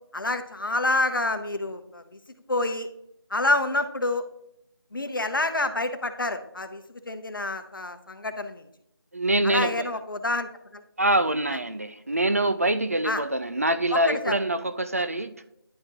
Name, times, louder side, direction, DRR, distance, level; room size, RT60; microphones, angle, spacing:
voice 1, 0.1-2.0 2.5-2.9 3.3-4.2 4.9-6.8 7.1-8.6 9.4-10.8 13.0-13.2 14.1-14.3 15.0-15.1, left 2 dB, 60° left, 0.8 m, -27 dB
voice 2, 9.1-9.9 11.0-15.3, right 1 dB, 35° right, 0.4 m, -25 dB
10.5 x 3.7 x 2.8 m
figure-of-eight pair, 170°, 13 cm